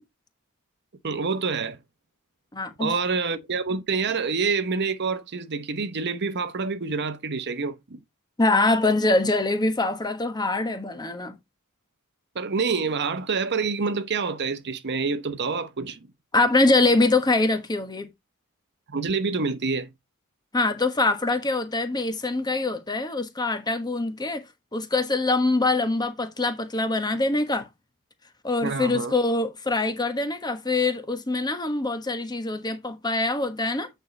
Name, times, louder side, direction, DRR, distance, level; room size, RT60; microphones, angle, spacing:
voice 1, 1.0-1.8 2.8-8.0 12.3-16.0 18.9-19.9 28.6-29.1, right 4 dB, 50° right, 0.9 m, -27 dB
voice 2, 2.5-2.9 8.4-11.4 16.3-18.1 20.5-24.4 24.7-27.7 28.4-33.9, left 2 dB, 20° left, 1.2 m, -24 dB
8.6 x 4.5 x 4.0 m
head